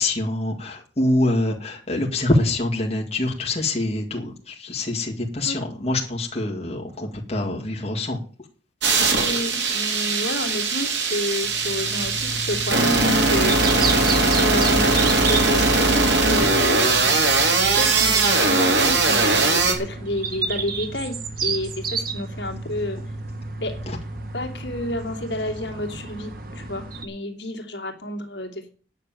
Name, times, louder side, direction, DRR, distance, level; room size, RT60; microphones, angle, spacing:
voice 1, 0.0-8.2 23.9-24.0, left 2 dB, 35° left, -1 dB, 2.1 m, -25 dB
sound 1, 8.8-19.7, right 3 dB, 65° right, 2.8 m, -20 dB
voice 2, 8.9-14.0 14.4-17.4 17.7-23.0 23.6-23.8 24.3-28.7, left 1 dB, 65° left, 3 dB, 2.7 m, -30 dB
sound 2, 11.4-27.1, right 4 dB, 50° right, 1.5 m, -31 dB
9.9 x 6.6 x 9.0 m, 0.39 s
head